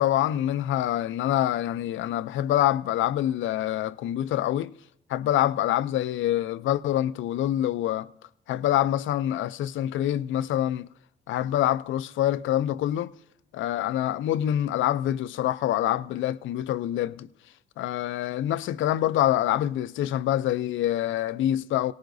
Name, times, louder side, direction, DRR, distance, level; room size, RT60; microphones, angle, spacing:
voice 1, 0.0-4.7 5.1-8.1 8.5-10.9 11.3-13.1 13.5-17.3 17.8-21.9, left 12 dB, 75° left, 0.5 m, -26 dB
24.0 x 18.0 x 2.6 m
cardioid pair, 90°, 20 cm